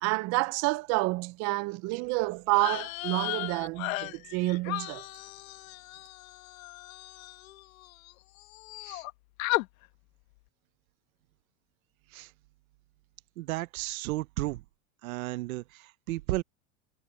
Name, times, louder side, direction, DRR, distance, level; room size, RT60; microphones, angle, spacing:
voice 1, 0.0-5.0, right 24 dB, 40° right, 0.5 m, -29 dB
sound 1, 2.5-8.1 8.4-9.1 9.4-9.7, left 19 dB, 75° left, 1.2 m, -36 dB
voice 2, 13.4-14.6 15.0-16.4, right 18 dB, 80° right, 1.0 m, -33 dB
supercardioid pair, 145°, 41 cm